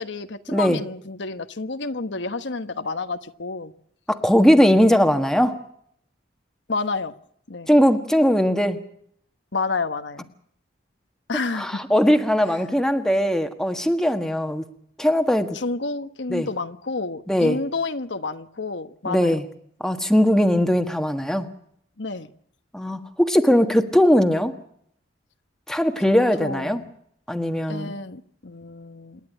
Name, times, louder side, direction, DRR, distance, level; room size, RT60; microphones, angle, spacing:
voice 1, 0.0-3.7 6.7-7.1 7.5-7.7 9.5-10.3 11.3-11.8 12.5-12.6 15.5-19.3 22.0-22.3 26.1-26.9 27.7-29.2, left 3 dB, 80° left, 9 dB, 1.2 m, -30 dB
voice 2, 4.1-5.6 7.7-8.8 11.6-14.6 15.0-15.6 16.3-16.5 17.3-17.6 19.0-19.4 19.8-21.5 22.7-24.6 25.7-26.8 27.3-27.9, equal, 5° left, 6 dB, 1.5 m, -19 dB
28.0 x 11.0 x 10.0 m, 0.67 s
head